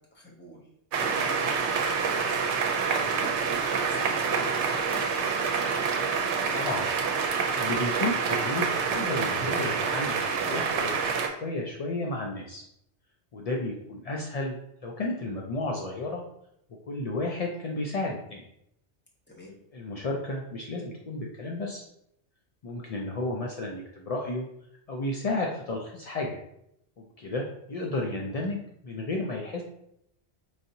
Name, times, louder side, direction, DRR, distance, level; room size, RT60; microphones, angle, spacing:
voice 1, 0.1-0.6 0.9-2.5 3.2-3.6 3.8-5.5 19.3-19.5, left 1 dB, 10° left, -4 dB, 0.7 m, -43 dB
sound 1, 0.9-11.3, right 5 dB, 85° right, 0.9 m, -27 dB
voice 2, 6.5-6.9 7.2-12.6 13.3-16.2 16.9-18.4 19.7-21.8 22.6-24.5 24.9-26.4 27.0-29.6, left 2 dB, 65° left, -1 dB, 0.3 m, -32 dB
4.7 x 2.7 x 2.6 m, 0.77 s
omnidirectional pair, 1.1 m